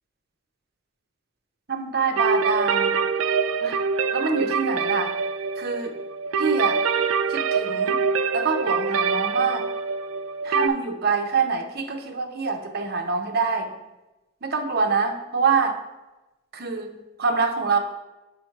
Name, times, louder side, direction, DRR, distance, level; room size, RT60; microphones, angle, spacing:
voice 1, 1.7-3.0 3.6-3.8 4.1-5.1 5.6-6.0 6.4-6.8 7.3-8.0 8.3-9.7 10.4-13.7 14.4-15.8 16.5-17.8, right 5 dB, 50° right, 5 dB, 0.7 m, -25 dB
sound 1, 2.2-10.7, right 5 dB, 85° right, 0.4 m, -24 dB
6.0 x 4.6 x 4.5 m, 1.0 s
head